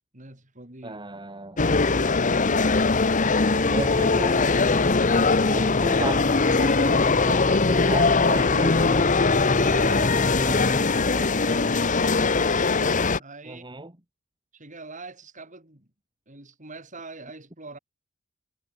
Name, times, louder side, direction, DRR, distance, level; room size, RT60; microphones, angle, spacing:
voice 1, 0.1-1.0 9.6-13.6 14.5-15.9 16.3-17.8, right 3 dB, 35° right, 5.3 m, -43 dB
voice 2, 0.8-1.7 3.7-4.5 5.5-9.1 13.4-13.9, right 2 dB, 20° right, 2.4 m, -35 dB
sound 1, 1.6-13.2, left 4 dB, 40° left, 1.0 m, -21 dB
sound 2, 3.8-10.8, left 1 dB, 15° left, 0.9 m, -32 dB
head